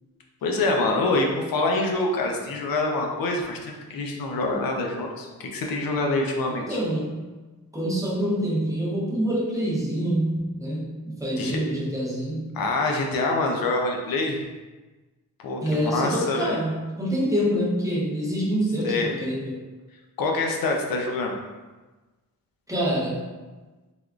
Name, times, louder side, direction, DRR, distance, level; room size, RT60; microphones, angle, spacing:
voice 1, 0.4-6.8 11.4-11.6 12.5-14.4 15.4-16.6 18.8-19.1 20.2-21.4, left 2 dB, 80° left, 1 dB, 0.6 m, -25 dB
voice 2, 6.5-7.2 7.7-12.6 15.6-19.6 22.7-23.2, equal, 10° right, -5 dB, 0.6 m, -26 dB
3.4 x 2.4 x 2.3 m, 1.2 s
wide cardioid pair, 130°, 34 cm